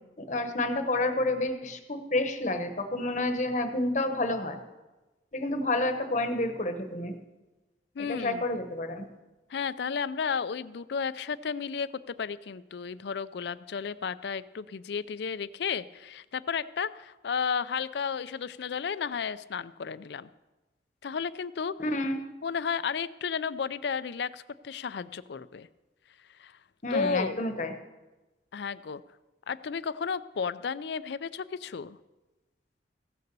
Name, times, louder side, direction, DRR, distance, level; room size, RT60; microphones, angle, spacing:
voice 1, 0.2-4.6 5.3-7.1 8.0-9.1 21.8-22.2 26.8-27.7, left 2 dB, 40° left, 7 dB, 1.0 m, -29 dB
voice 2, 8.0-8.4 9.5-20.3 21.0-21.7 22.4-25.7 26.4-26.6 26.9-27.4 28.5-29.0 29.5-32.0, left 6 dB, 60° left, 16 dB, 0.4 m, -33 dB
15.5 x 6.7 x 6.8 m, 1.1 s
head